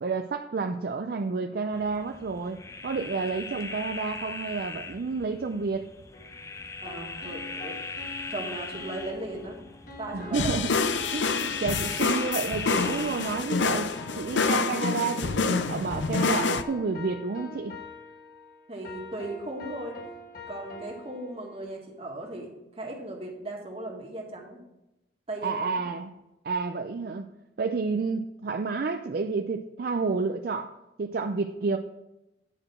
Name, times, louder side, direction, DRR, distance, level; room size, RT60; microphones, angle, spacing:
voice 1, 0.0-2.6 2.8-5.9 10.1-10.7 11.1-17.8 25.4-26.2 26.4-27.3 27.6-31.8, right 4 dB, 55° right, 6 dB, 0.4 m, -30 dB
sound 1, 1.7-14.6, left 3 dB, 15° left, 0.5 m, -40 dB
sound 2, 6.1-21.6, left 3 dB, 50° left, 1.5 m, -45 dB
voice 2, 6.8-7.8 8.3-9.6 10.0-10.6 18.7-20.0 20.5-24.6 25.3-25.8, right 2 dB, 35° right, 0 dB, 1.7 m, -37 dB
sound 3, 10.3-16.6, left 4 dB, 85° left, 0.5 m, -27 dB
9.8 x 4.8 x 5.9 m, 0.93 s
head